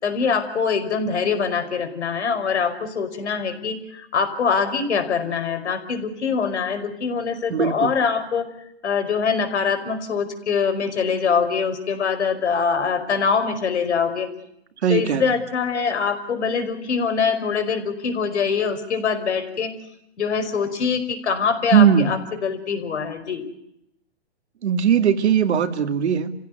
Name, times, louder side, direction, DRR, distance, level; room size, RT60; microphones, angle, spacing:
voice 1, 0.0-8.5 8.8-14.3 14.9-19.7 20.2-23.4, left 6 dB, 75° left, 8 dB, 5.2 m, -23 dB
voice 2, 7.5-7.9 14.8-15.3 21.7-22.1 24.6-26.3, right 8 dB, 70° right, 8 dB, 2.4 m, -19 dB
29.0 x 16.0 x 9.4 m, 0.81 s
hypercardioid pair, 145°, 34 cm